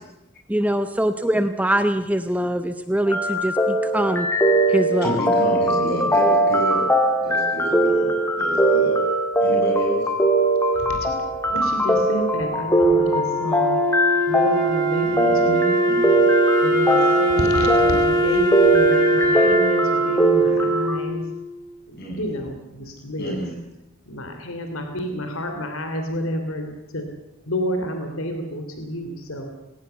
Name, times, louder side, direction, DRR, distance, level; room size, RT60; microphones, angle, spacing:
voice 1, 0.5-4.3 4.7-5.2, right 1 dB, 5° right, 9 dB, 0.8 m, -23 dB
sound 1, 3.1-21.0, right 1 dB, 10° left, 2.1 m, -20 dB
voice 2, 5.0-6.9 7.2-8.1 8.4-8.9 9.4-10.0 15.0-15.6 15.9-16.2 20.5-20.7 22.0-22.3 23.2-23.5, right 1 dB, 50° left, 0 dB, 7.6 m, -29 dB
voice 3, 10.8-13.8 14.3-15.8 16.6-21.2 21.9-23.4 24.0-27.0 27.5-29.5, equal, 75° left, 5 dB, 2.9 m, -29 dB
Wind instrument woodwind instrument, 12.7-21.7, right 1 dB, 40° right, 7.3 m, -22 dB
19.5 x 18.0 x 8.1 m, 0.88 s
head